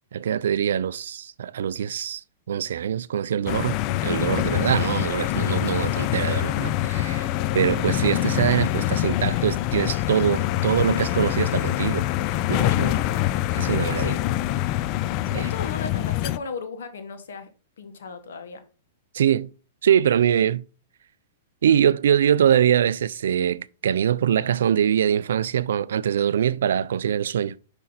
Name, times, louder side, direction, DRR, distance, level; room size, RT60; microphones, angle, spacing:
voice 1, 0.1-2.2 2.5-7.3 7.5-12.1 12.5-13.0 13.5-14.2 15.3-15.5 19.1-19.5 19.8-20.6 21.6-27.6, right 9 dB, 70° right, 0.3 m, -23 dB
sound 1, 3.5-16.4, left 14 dB, 40° left, 0.4 m, -25 dB
voice 2, 5.7-6.1 7.6-7.9 14.0-14.2 15.1-17.5 17.8-18.6, left 5 dB, 75° left, 1.4 m, -36 dB
5.7 x 5.3 x 4.0 m
hypercardioid pair, 120°, 0 cm